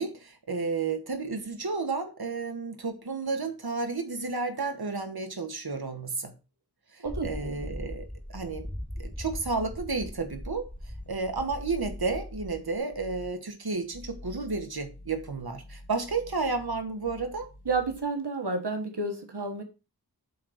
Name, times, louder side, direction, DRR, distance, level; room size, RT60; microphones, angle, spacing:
voice 1, 0.0-6.3 6.9-8.7 9.0-10.7 11.1-17.5, right 4 dB, 70° right, 5 dB, 1.3 m, -32 dB
voice 2, 7.0-7.7 17.6-19.6, right 3 dB, 90° right, 5 dB, 1.4 m, -31 dB
sound 1, 7.1-12.8, equal, 5° left, 2.4 m, -40 dB
sound 2, 10.0-12.5 12.9-13.4 13.8-18.1, left 1 dB, 70° left, 1.8 m, -48 dB
8.4 x 3.9 x 6.2 m, 0.30 s
wide cardioid pair, 45°, 39 cm